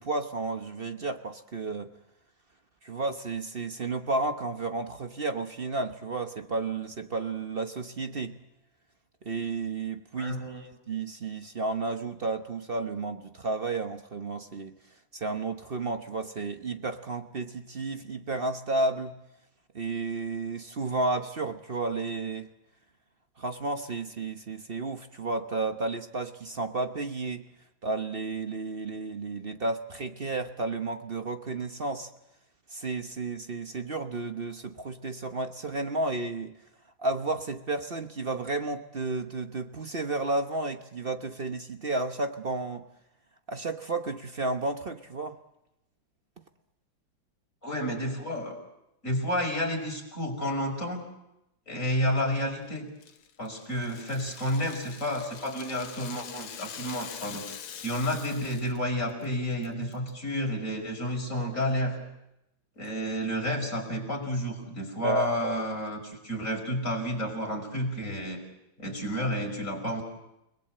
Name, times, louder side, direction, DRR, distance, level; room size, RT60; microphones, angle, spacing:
voice 1, 0.0-1.9 2.8-8.4 9.2-14.8 15.1-19.2 19.7-22.5 23.4-27.5 27.8-32.1 32.7-36.5 37.0-42.8 43.5-45.4 65.0-65.6, right 3 dB, 40° right, 7 dB, 0.9 m, -32 dB
voice 2, 10.1-10.6 47.6-48.6 49.0-51.1 51.7-52.9 53.4-62.0 62.8-68.4 68.8-70.0, equal, 40° left, 1 dB, 5.9 m, -31 dB
Rattle (instrument), 53.0-58.8 59.1-59.3 59.6-60.1, left 8 dB, 80° left, 2.0 m, -44 dB
30.0 x 20.0 x 7.8 m, 0.87 s
omnidirectional pair, 2.2 m